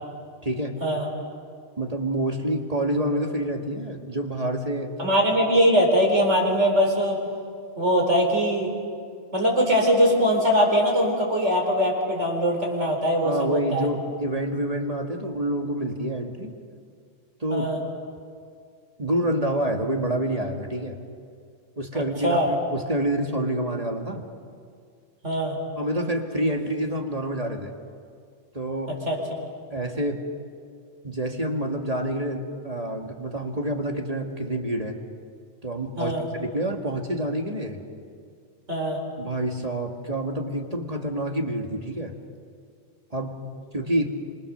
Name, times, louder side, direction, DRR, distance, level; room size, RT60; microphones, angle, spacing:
voice 1, 0.4-0.7 1.8-4.9 13.2-16.5 17.4-17.7 19.0-21.0 21.8-24.2 25.8-27.7 28.5-28.9 29.7-30.2 31.0-35.0 35.6-36.1 36.4-37.8 39.2-42.1 43.1-43.4 43.7-44.1, right 1 dB, 30° right, 2 dB, 2.1 m, -27 dB
voice 2, 5.0-7.2 7.8-8.7 9.3-13.9 17.5-17.8 22.2-22.6 25.2-25.6 29.0-29.4 36.0-36.3 38.7-39.0, equal, 65° right, 0 dB, 4.8 m, -21 dB
28.5 x 26.0 x 6.8 m, 2.2 s
omnidirectional pair, 1.3 m